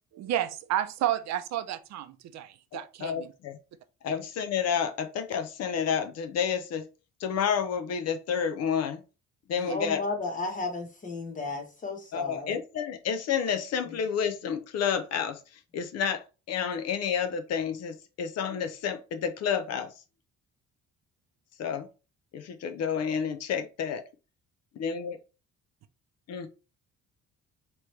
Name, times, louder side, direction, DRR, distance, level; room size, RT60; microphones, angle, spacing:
voice 1, 0.1-3.3 4.1-4.2 9.6-9.8, right 12 dB, 65° right, 0.5 m, -31 dB
voice 2, 3.0-3.6 4.0-6.8 7.2-9.0 9.5-10.0 12.1-15.4 15.7-19.9 21.6-21.9 22.3-24.0 24.8-25.2 26.3-26.5, left 7 dB, 60° left, 0.6 m, -30 dB
voice 3, 9.7-12.6 13.8-14.0, left 3 dB, 25° left, 1.1 m, -34 dB
4.8 x 3.1 x 3.1 m
cardioid pair, 150°, 30 cm